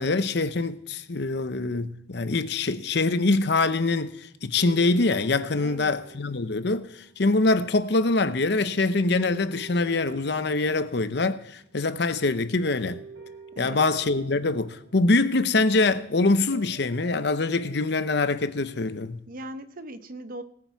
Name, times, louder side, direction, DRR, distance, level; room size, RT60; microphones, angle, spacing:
voice 1, 0.0-13.0 13.6-19.2, left 3 dB, 65° left, 0.8 m, -24 dB
sound 1, 4.6-7.2 8.9-11.5 11.8-12.2 12.7-15.5 16.5-18.0, right 3 dB, 80° right, 6.8 m, -46 dB
voice 2, 5.6-6.0 13.5-13.8 19.3-20.4, right 1 dB, 50° right, 0.8 m, -39 dB
19.0 x 8.6 x 4.7 m
head